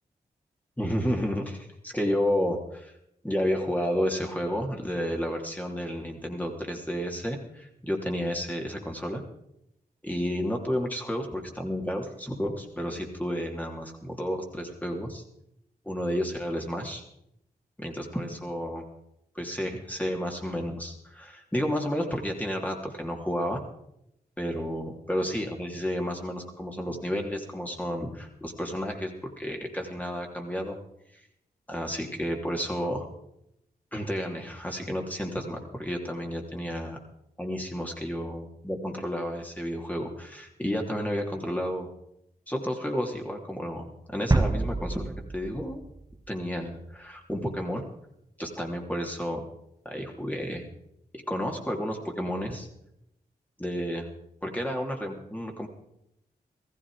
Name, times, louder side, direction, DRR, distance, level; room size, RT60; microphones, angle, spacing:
voice 1, 0.8-2.9 3.2-9.2 10.0-15.2 15.8-17.0 17.8-18.9 19.3-23.6 24.4-30.8 31.7-33.1 33.9-37.0 37.4-41.9 42.5-45.8 46.3-47.8 48.4-49.4 49.8-50.6 51.3-52.7 53.6-54.1 54.4-55.7, equal, 10° left, 1 dB, 3.2 m, -31 dB
sound 1, 44.3-46.8, right 2 dB, 20° right, 0.8 m, -28 dB
15.0 x 15.0 x 5.0 m, 0.79 s
cardioid pair, 45°, 16 cm